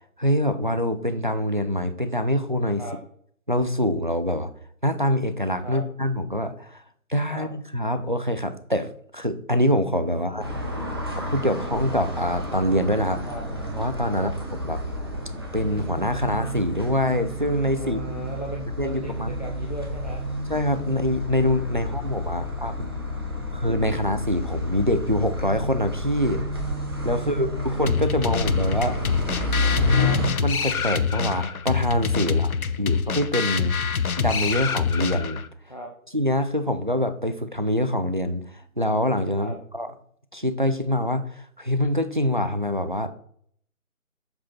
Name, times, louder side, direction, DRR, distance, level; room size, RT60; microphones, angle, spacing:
voice 1, 0.2-2.8 3.5-4.5 4.8-6.8 7.1-10.5 11.2-13.3 13.7-14.3 14.6-14.8 15.5-18.0 18.8-19.4 20.5-22.9 23.5-26.5 27.0-29.0 29.9-32.5 32.8-33.8 34.2-35.4 36.1-39.9 40.3-43.1, equal, 35° right, 11 dB, 0.4 m, -25 dB
voice 2, 10.2-11.1 13.2-13.4 14.1-14.3 17.8-20.2 27.1-27.8 30.0-30.2 32.2-33.0 35.7-35.9 39.4-39.6, equal, 30° left, 0 dB, 0.6 m, -39 dB
sound 1, 10.4-30.3, left 1 dB, 20° right, 0.8 m, -30 dB
sound 2, 27.9-35.5, left 6 dB, 75° left, 0.7 m, -26 dB
7.5 x 4.2 x 4.4 m, 0.62 s
figure-of-eight pair, 160°, 43 cm